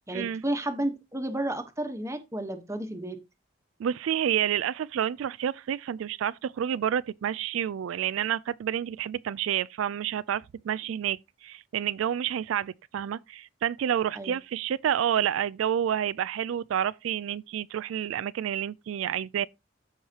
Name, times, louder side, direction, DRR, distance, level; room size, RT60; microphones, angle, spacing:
voice 1, 0.1-3.2 14.1-14.4, right 1 dB, 15° right, 1.1 m, -32 dB
voice 2, 3.8-19.5, right 9 dB, 90° right, 0.3 m, -29 dB
14.0 x 4.7 x 2.9 m
head